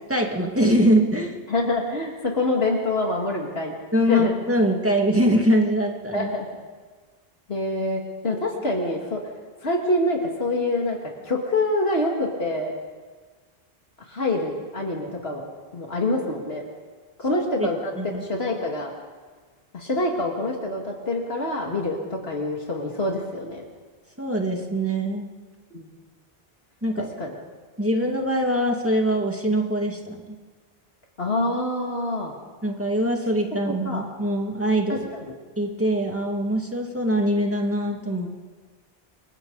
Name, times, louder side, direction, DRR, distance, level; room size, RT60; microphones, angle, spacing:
voice 1, 0.1-1.4 3.9-6.3 17.3-17.7 18.0-18.2 24.2-25.3 26.8-27.1 27.8-30.4 32.6-35.1 35.6-38.3, right 1 dB, 15° right, 1 dB, 2.1 m, -23 dB
voice 2, 1.5-3.7 4.1-4.3 6.1-6.5 7.5-9.2 9.6-11.0 11.2-12.7 14.1-15.4 15.7-16.6 17.2-18.9 19.7-23.6 25.7-25.9 27.2-27.4 31.2-32.3 33.7-34.0 34.9-35.3, left 2 dB, 80° left, 0 dB, 2.5 m, -26 dB
29.0 x 23.0 x 4.0 m, 1.4 s
omnidirectional pair, 1.0 m